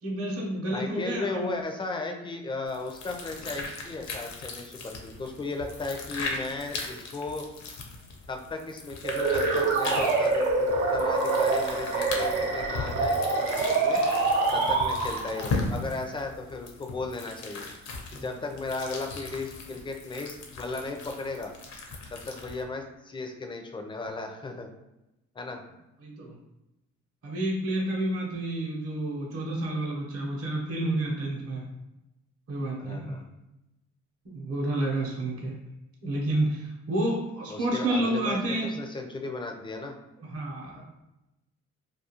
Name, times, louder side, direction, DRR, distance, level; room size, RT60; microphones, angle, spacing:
voice 1, 0.0-1.5 18.1-18.2 26.0-26.4 27.2-31.7 32.5-33.2 34.2-35.5 36.0-38.7 40.2-40.8, right 1 dB, 50° right, -2 dB, 0.8 m, -30 dB
voice 2, 0.7-7.4 8.3-14.0 14.5-17.7 18.1-21.5 22.1-24.7 25.4-25.6 32.8-33.2 37.5-39.9, left 3 dB, 15° left, 4 dB, 0.4 m, -35 dB
sound 1, 2.7-22.6, left 3 dB, 70° left, 0.6 m, -38 dB
sound 2, 9.0-15.5, right 3 dB, 85° right, 0.7 m, -25 dB
2.4 x 2.3 x 2.8 m, 0.94 s
cardioid pair, 90°, 30 cm